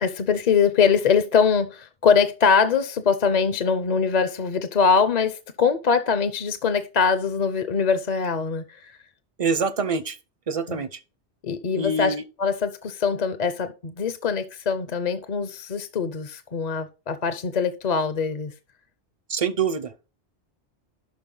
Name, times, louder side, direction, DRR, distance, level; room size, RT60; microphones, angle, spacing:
voice 1, 0.0-8.9 10.7-10.8 11.4-18.5, left 6 dB, 45° left, 0.7 m, -23 dB
voice 2, 9.4-10.2 10.5-11.0 11.8-12.2 19.3-20.1, right 4 dB, 40° right, 0.6 m, -25 dB
11.5 x 4.4 x 3.8 m
omnidirectional pair, 1.2 m